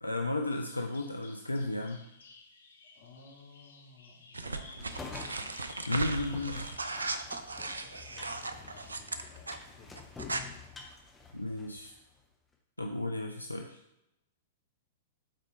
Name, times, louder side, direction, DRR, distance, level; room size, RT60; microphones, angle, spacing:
voice 1, 0.0-2.0 5.9-6.7 11.3-11.9 12.8-13.8, left 2 dB, 85° left, 4 dB, 0.4 m, -34 dB
Bird vocalization bird call bird song, 0.7-9.1, left 3 dB, 65° left, 0.9 m, -55 dB
voice 2, 2.9-5.5 7.8-10.2, left 2 dB, 50° left, -2 dB, 2.1 m, -56 dB
sound 1, 4.3-9.6 10.0-10.4, right 3 dB, 75° right, 0.5 m, -37 dB
sound 2, 4.8-12.0, left 4 dB, 10° left, 0.9 m, -48 dB
7.7 x 4.3 x 3.3 m, 0.88 s
figure-of-eight pair, 100°, 0 cm